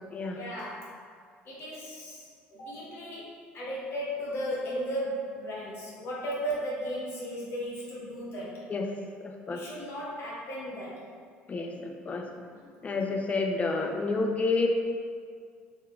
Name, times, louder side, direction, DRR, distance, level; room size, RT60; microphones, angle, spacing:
voice 1, 0.3-0.9 1.4-8.6 9.5-11.0 12.3-12.6, equal, 55° left, -6 dB, 0.9 m, -36 dB
voice 2, 9.2-9.6 11.5-12.3 12.8-14.7, left 3 dB, 30° left, 3 dB, 0.4 m, -29 dB
3.4 x 2.3 x 2.2 m, 2.1 s
hypercardioid pair, 75°, 5 cm